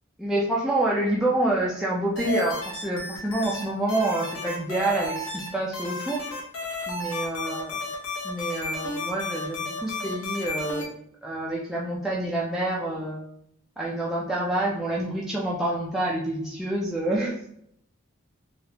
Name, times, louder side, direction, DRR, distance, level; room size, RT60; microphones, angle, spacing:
voice 1, 0.2-6.2 6.9-7.8 8.2-10.9 11.2-13.2 13.8-17.5, right 1 dB, ahead, -6 dB, 0.3 m, -27 dB
sound 1, 2.2-3.6 3.9-5.5 5.7-10.8, left 3 dB, 75° left, 1.0 m, -32 dB
3.4 x 2.3 x 2.8 m, 0.70 s
head